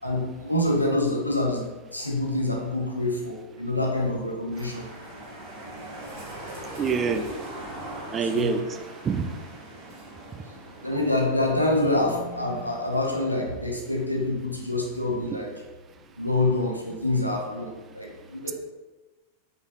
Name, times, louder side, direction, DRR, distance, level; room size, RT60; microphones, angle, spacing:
voice 1, 0.0-1.6 1.9-4.9 8.2-8.7 10.8-15.5 16.2-18.5, left 2 dB, 90° left, 0 dB, 0.8 m, -26 dB
sound 1, 4.5-13.4, right 1 dB, 45° right, 1.3 m, -41 dB
voice 2, 6.8-7.3 8.1-8.6 9.0-9.3, right 6 dB, 25° right, 8 dB, 0.3 m, -25 dB
4.9 x 3.9 x 2.5 m, 1.2 s
figure-of-eight pair, 90°, 0 cm